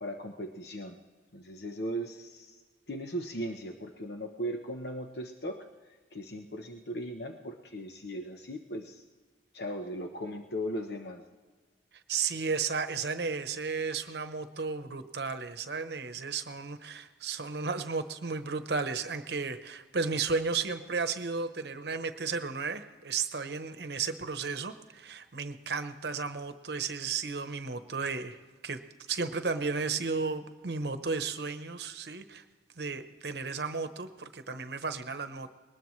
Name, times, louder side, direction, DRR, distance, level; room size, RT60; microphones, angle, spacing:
voice 1, 0.0-1.0 1.3-2.6 2.9-5.7 6.1-9.0 9.5-11.2, equal, 65° left, 4 dB, 0.9 m, -38 dB
voice 2, 12.1-28.8 29.1-32.4 32.8-35.5, right 4 dB, 65° right, 10 dB, 0.9 m, -34 dB
20.5 x 19.5 x 3.2 m, 1.4 s
head